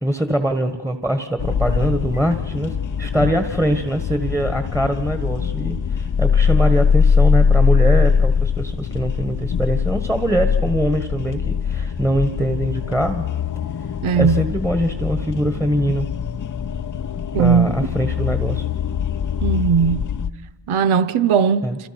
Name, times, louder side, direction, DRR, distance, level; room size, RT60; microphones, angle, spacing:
voice 1, 0.0-13.2 14.2-16.1 17.3-18.7 21.6-21.8, equal, 5° right, 1.5 m, -22 dB
sound 1, 1.4-20.3, left 6 dB, 40° left, 0.7 m, -22 dB
voice 2, 14.0-14.4 17.3-17.8 19.4-20.0 20.7-21.6, right 6 dB, 80° right, 0.9 m, -17 dB
29.0 x 27.0 x 6.0 m
cardioid pair, 85°, 48 cm